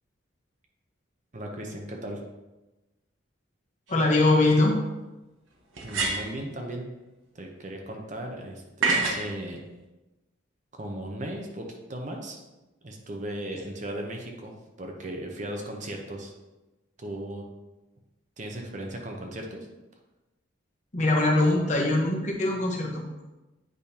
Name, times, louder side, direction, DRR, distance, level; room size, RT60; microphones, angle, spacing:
voice 1, 1.3-2.2 5.8-6.9 7.3-9.6 10.7-12.4 12.8-16.3 17.0-17.5 18.4-19.7, right 1 dB, 40° right, 2 dB, 0.8 m, -37 dB
voice 2, 3.9-4.8 20.9-23.2, left 2 dB, 40° left, -1 dB, 1.1 m, -22 dB
sound 1, 3.9-4.0 5.7-6.4 8.8-9.3, right 3 dB, 85° right, 1.1 m, -26 dB
8.5 x 5.1 x 2.8 m, 1.1 s
head